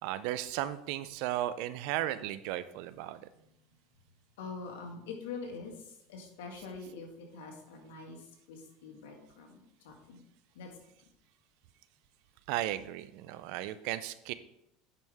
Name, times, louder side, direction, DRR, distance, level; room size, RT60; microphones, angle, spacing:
voice 1, 0.0-3.3 12.5-14.3, right 13 dB, 70° right, 14 dB, 0.5 m, -35 dB
voice 2, 4.4-10.2 10.6-10.7, left 4 dB, 80° left, 1 dB, 1.9 m, -45 dB
9.3 x 5.2 x 3.5 m, 0.81 s
supercardioid pair, 110°, 0 cm